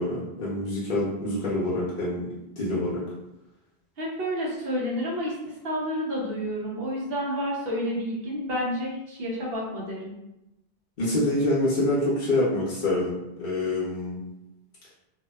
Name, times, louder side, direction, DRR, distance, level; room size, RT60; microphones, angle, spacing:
voice 1, 0.0-2.3 2.6-3.0 11.0-14.2, left 1 dB, 55° left, -8 dB, 0.7 m, -26 dB
voice 2, 4.0-5.3 5.6-10.1, equal, 65° right, -3 dB, 0.9 m, -30 dB
2.6 x 2.1 x 2.2 m, 0.91 s
omnidirectional pair, 1.1 m